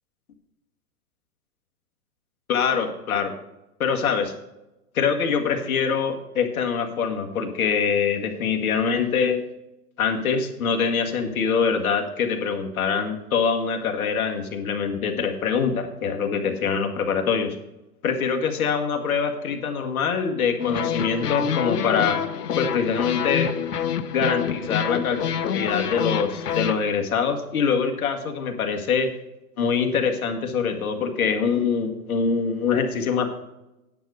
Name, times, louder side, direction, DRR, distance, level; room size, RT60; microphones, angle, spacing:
voice 1, 2.5-3.3 3.8-4.3 4.9-9.4 10.0-17.6 18.0-22.2 22.6-23.5 24.1-25.2 25.5-29.1 29.6-33.4, left 6 dB, 65° left, 4 dB, 1.9 m, -24 dB
sound 1, 20.6-26.8, left 8 dB, 90° left, 0.9 m, -27 dB
10.0 x 7.8 x 4.9 m, 0.94 s
hypercardioid pair, 135°, 46 cm